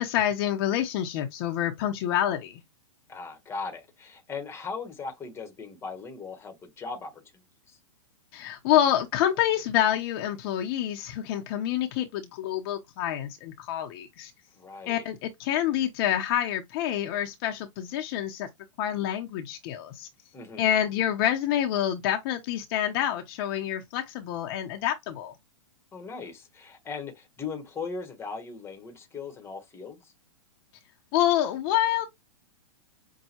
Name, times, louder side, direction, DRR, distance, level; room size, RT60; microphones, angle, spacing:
voice 1, 0.0-2.6 8.3-14.3 14.9-18.5 18.8-20.1 20.6-25.3 31.1-32.0, left 11 dB, 45° left, 0.7 m, -27 dB
voice 2, 3.1-7.2 7.7-7.8 14.6-15.0 20.3-20.7 25.9-30.1, left 4 dB, 15° left, 1.0 m, -38 dB
5.6 x 2.2 x 2.8 m
hypercardioid pair, 125°, 17 cm